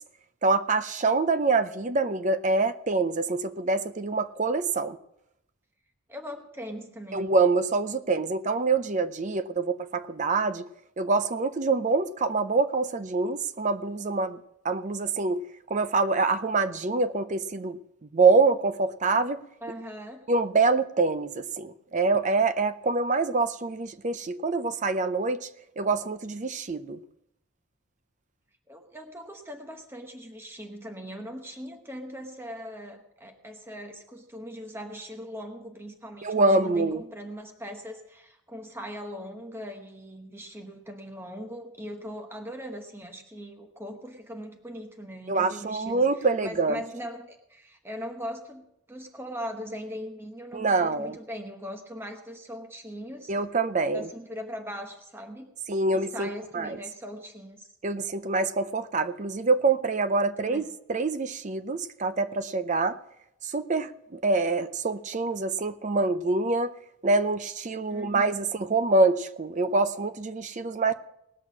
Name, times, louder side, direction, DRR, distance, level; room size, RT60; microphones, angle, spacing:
voice 1, 0.4-5.0 7.1-10.7 11.0-14.4 14.6-15.4 15.7-17.8 18.1-19.4 20.3-25.5 25.8-27.0 36.2-37.0 45.3-46.8 50.5-51.2 53.3-54.1 55.7-56.8 57.8-60.6 60.9-63.0 63.4-66.7 67.0-70.9, right 3 dB, 35° right, 12 dB, 0.5 m, -25 dB
voice 2, 6.1-7.3 19.6-20.2 28.7-46.0 46.4-53.3 53.9-55.5 55.9-57.7 60.2-60.6 67.9-68.3, equal, 10° right, 4 dB, 1.0 m, -40 dB
19.0 x 6.3 x 6.0 m, 0.80 s
head